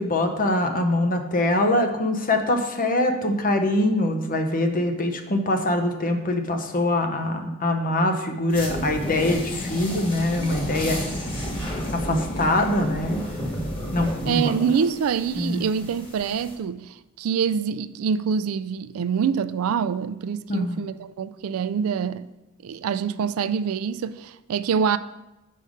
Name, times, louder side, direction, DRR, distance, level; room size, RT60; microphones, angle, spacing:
voice 1, 0.0-11.0 11.9-13.2 13.9-14.5 15.4-15.6 20.5-20.8, left 1 dB, 40° left, 0.8 m, -23 dB
sound 1, 8.5-16.5, equal, 25° left, 2.0 m, -31 dB
voice 2, 14.2-22.3 22.6-25.0, right 6 dB, 75° right, 0.3 m, -25 dB
5.5 x 5.0 x 6.4 m
head